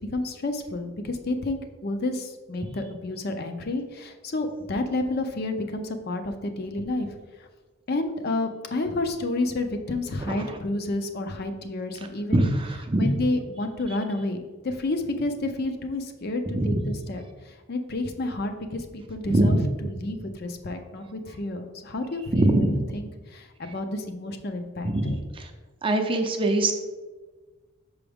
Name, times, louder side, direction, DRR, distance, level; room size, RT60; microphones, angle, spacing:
voice 1, 0.1-7.1 7.9-12.5 13.0-14.4 14.6-25.2, left 2 dB, 50° left, 6 dB, 0.5 m, -30 dB
voice 2, 10.2-10.6 12.0-12.1 12.3-13.1 16.5-16.8 19.3-19.7 22.3-22.8 24.8-25.1 25.4-25.5 25.8-26.7, right 1 dB, 25° right, 5 dB, 0.5 m, -23 dB
6.0 x 4.7 x 3.5 m, 1.3 s
head